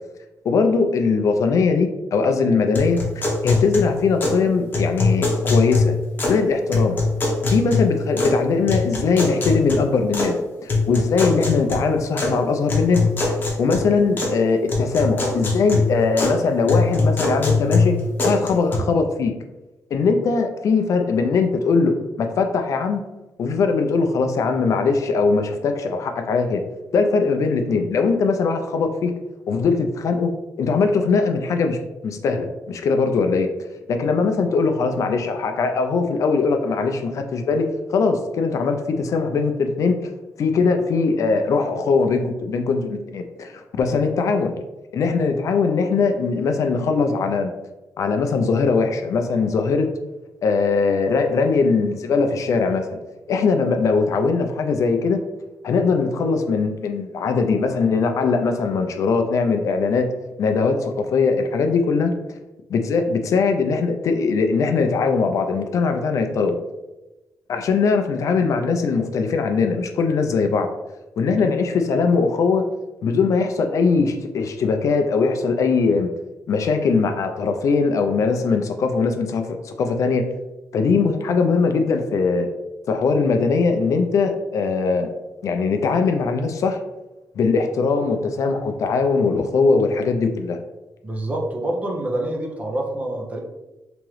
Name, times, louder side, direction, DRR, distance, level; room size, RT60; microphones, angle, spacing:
voice 1, 0.5-3.0 3.4-5.9 6.3-7.0 7.4-19.3 19.9-23.0 23.4-26.6 26.9-29.2 29.5-33.5 33.9-40.1 40.4-44.5 44.9-47.5 48.0-49.9 50.4-53.0 53.3-55.2 55.6-60.1 60.4-62.1 62.7-66.6 67.5-70.7 71.2-72.6 73.0-76.1 76.5-80.2 80.7-82.5 82.9-85.1 85.4-86.8 87.4-90.6, left 4 dB, 55° left, 5 dB, 0.4 m, -20 dB
sound 1, 2.7-4.4 4.7-6.4 6.7-8.4 8.7-10.3 10.7-12.3 12.7-14.4 14.7-16.4 16.7-18.8, left 3 dB, 30° left, 0.8 m, -22 dB
voice 2, 91.0-93.4, right 1 dB, 25° right, 0 dB, 0.6 m, -27 dB
3.5 x 3.0 x 3.1 m, 1.0 s
wide cardioid pair, 165°, 6 cm